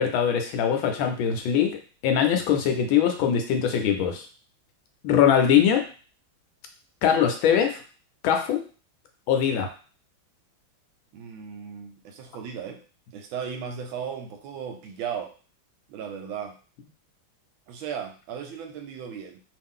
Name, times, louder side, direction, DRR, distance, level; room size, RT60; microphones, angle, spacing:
voice 1, 0.0-1.8 2.0-4.3 5.0-5.8 7.0-7.8 8.2-8.6 9.3-9.7, left 8 dB, 75° left, 5 dB, 1.3 m, -22 dB
voice 2, 11.1-12.8 13.1-15.3 15.9-16.6 17.7-19.4, right 7 dB, 75° right, 5 dB, 1.3 m, -36 dB
3.2 x 2.4 x 3.6 m, 0.38 s
omnidirectional pair, 2.3 m